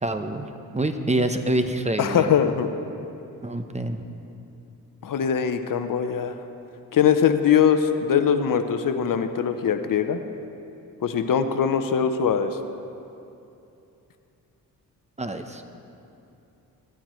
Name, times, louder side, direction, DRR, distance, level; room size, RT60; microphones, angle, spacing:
voice 1, 0.0-0.5 0.7-2.3 3.4-4.0 15.2-15.6, right 1 dB, 20° right, 7 dB, 0.9 m, -26 dB
voice 2, 2.0-2.7 5.0-6.4 6.9-10.2 11.0-12.6, left 7 dB, 60° left, 9 dB, 0.8 m, -22 dB
16.0 x 13.0 x 3.2 m, 2.8 s
cardioid pair, 65°, 37 cm